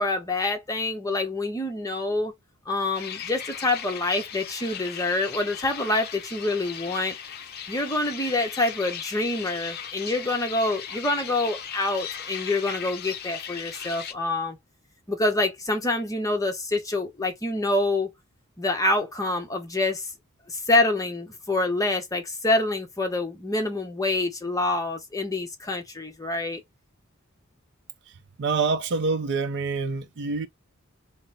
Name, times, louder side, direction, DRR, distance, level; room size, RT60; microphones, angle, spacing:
voice 1, 0.0-2.3 2.7-7.2 7.7-14.6 15.1-18.1 18.6-20.1 20.5-26.6, left 2 dB, 15° left, 0.9 m, -26 dB
sound 1, 2.9-14.1, left 8 dB, 50° left, 0.5 m, -37 dB
voice 2, 28.4-30.5, right 4 dB, 55° right, 0.5 m, -26 dB
3.9 x 2.0 x 4.0 m
head